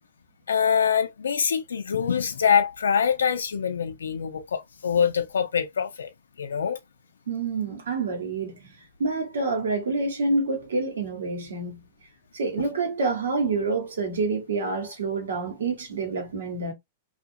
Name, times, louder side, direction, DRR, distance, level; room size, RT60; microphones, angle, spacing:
voice 1, 0.5-6.1 6.4-6.8, left 7 dB, 85° left, 0.4 m, -24 dB
voice 2, 7.3-8.7 9.0-11.9 12.3-16.7, right 3 dB, 80° right, 1.1 m, -27 dB
2.5 x 2.4 x 2.5 m
hypercardioid pair, 110°, 0 cm